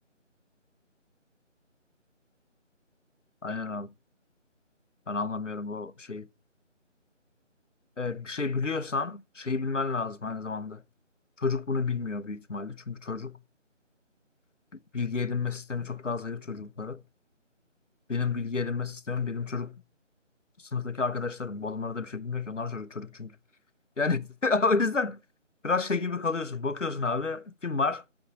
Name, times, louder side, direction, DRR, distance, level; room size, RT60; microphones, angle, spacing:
voice 1, 3.4-3.9 5.1-6.3 8.0-10.8 11.4-13.4 14.7-17.0 18.1-19.7 20.6-23.3 24.0-25.2 25.6-28.0, left 4 dB, 75° left, 1.1 m, -30 dB
9.4 x 5.0 x 5.5 m
figure-of-eight pair, 160°, 38 cm